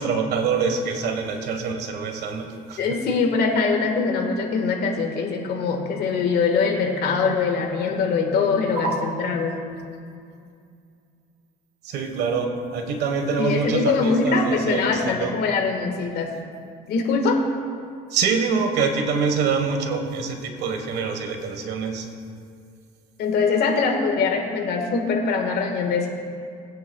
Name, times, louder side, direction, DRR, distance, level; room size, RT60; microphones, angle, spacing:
voice 1, 0.0-2.8 8.8-8.9 11.8-15.3 18.1-22.1, right 5 dB, 80° right, 5 dB, 1.3 m, -25 dB
voice 2, 2.8-9.5 13.4-16.3 16.9-17.4 23.2-26.1, left 4 dB, 70° left, 3 dB, 1.6 m, -22 dB
21.0 x 9.5 x 2.3 m, 2.3 s
cardioid pair, 110°, 17 cm